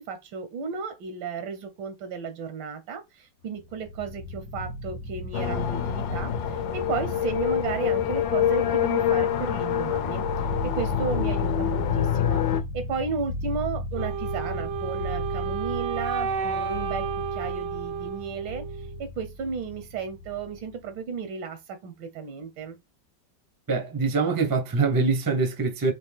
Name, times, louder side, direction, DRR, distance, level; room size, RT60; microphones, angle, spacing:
voice 1, 0.0-10.3 10.6-12.4 12.7-22.8, right 5 dB, 85° right, 1.5 m, -34 dB
sound 1, 3.6-20.9, left 1 dB, 65° left, 0.7 m, -36 dB
sound 2, 5.3-12.6, left 10 dB, 90° left, 1.3 m, -26 dB
Wind instrument woodwind instrument, 14.0-19.0, right 7 dB, 65° right, 0.8 m, -31 dB
voice 2, 23.7-25.9, right 4 dB, 35° right, 0.3 m, -24 dB
4.5 x 2.7 x 3.5 m
omnidirectional pair, 2.0 m